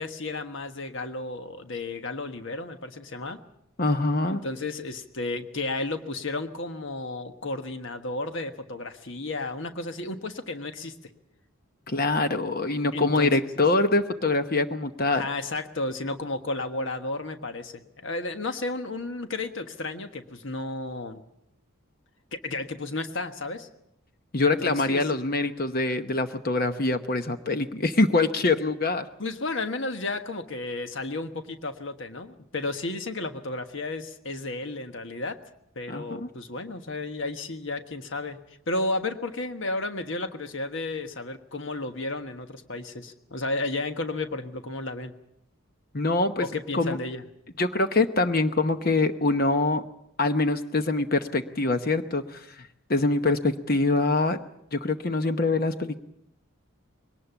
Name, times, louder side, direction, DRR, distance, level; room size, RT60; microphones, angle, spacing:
voice 1, 0.0-3.4 4.3-10.9 12.9-13.3 15.1-21.2 22.3-23.7 24.4-25.1 29.2-35.4 35.7-38.4 38.7-45.1 46.4-47.2, left 2 dB, 60° left, 7 dB, 1.4 m, -33 dB
voice 2, 3.8-4.4 11.9-15.2 24.3-29.0 35.9-36.3 45.9-46.5 46.7-47.0 47.6-49.8 50.2-52.5 52.9-54.4 54.7-56.0, left 2 dB, 45° left, 8 dB, 0.9 m, -24 dB
21.5 x 18.5 x 7.1 m, 0.79 s
head